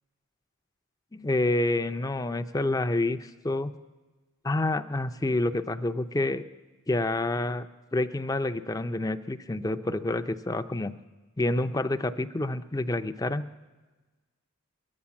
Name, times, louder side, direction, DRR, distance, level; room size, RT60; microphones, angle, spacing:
voice 1, 1.1-3.7 4.4-6.4 6.9-7.7 7.9-10.9 11.4-13.4, left 2 dB, 15° left, 10 dB, 0.4 m, -28 dB
23.0 x 8.6 x 7.1 m, 1.3 s
head